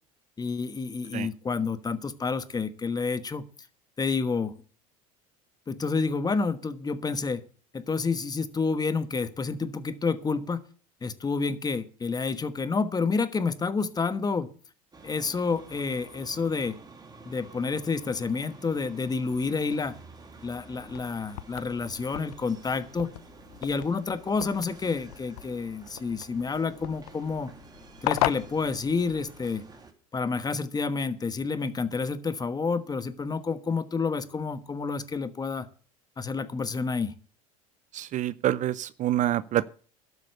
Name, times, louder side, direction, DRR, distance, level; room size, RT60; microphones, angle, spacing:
voice 1, 0.4-3.5 4.0-4.6 5.7-7.4 7.7-10.6 11.0-14.5 15.0-16.8 17.3-20.0 20.4-23.1 23.6-27.5 28.0-29.7 30.1-35.7 36.2-37.1, left 4 dB, 20° left, 13 dB, 1.2 m, -29 dB
sound 1, 14.9-29.9, right 4 dB, 20° right, 2.7 m, -50 dB
sound 2, 20.8-29.5, left 17 dB, 70° left, 0.6 m, -37 dB
voice 2, 37.9-39.6, right 13 dB, 40° right, 18 dB, 0.5 m, -27 dB
12.5 x 8.2 x 6.7 m, 0.41 s
hypercardioid pair, 80°, 19 cm